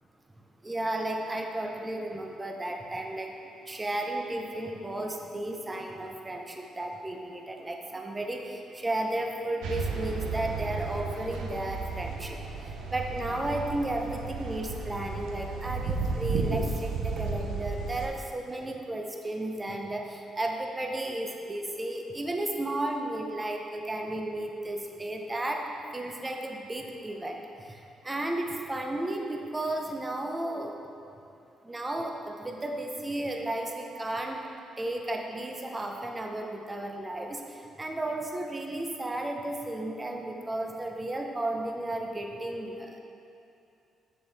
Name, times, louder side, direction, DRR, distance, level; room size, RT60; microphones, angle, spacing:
voice 1, 0.6-3.3 3.7-12.4 12.9-25.6 25.9-27.4 27.7-27.8 28.0-30.7 31.6-34.4 34.8-37.4 37.8-43.0, right 1 dB, 20° right, 2 dB, 0.8 m, -33 dB
sound 1, 9.6-18.1, right 4 dB, 85° right, 0.7 m, -33 dB
6.9 x 6.5 x 3.5 m, 2.7 s
cardioid pair, 90°, 0 cm